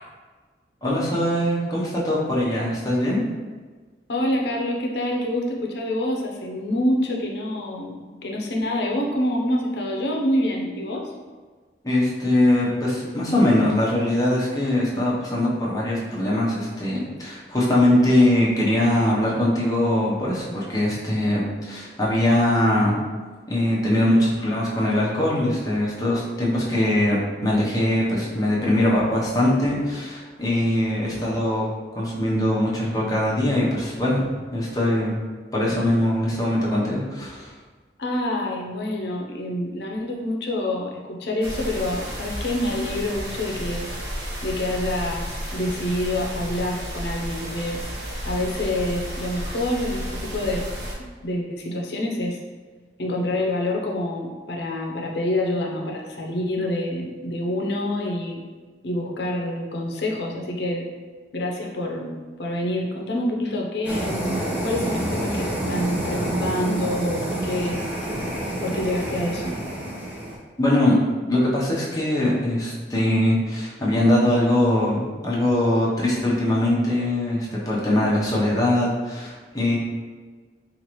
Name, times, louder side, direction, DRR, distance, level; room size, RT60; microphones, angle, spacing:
voice 1, 0.8-3.2 11.8-23.0 23.5-34.3 34.5-35.1 35.5-37.5 70.6-71.0 71.3-79.8, left 1 dB, 20° left, -6 dB, 0.8 m, -22 dB
voice 2, 4.1-11.1 31.2-31.4 38.0-43.9 44.4-47.8 48.2-50.7 51.0-52.4 53.0-58.4 58.8-60.9 61.3-67.8 68.6-69.6, left 1 dB, 75° left, 0 dB, 0.6 m, -27 dB
sound 1, 41.4-50.9, equal, 85° right, 0.9 m, -32 dB
sound 2, 63.8-70.4, right 1 dB, 10° right, 0.7 m, -28 dB
4.5 x 2.5 x 3.0 m, 1.4 s
head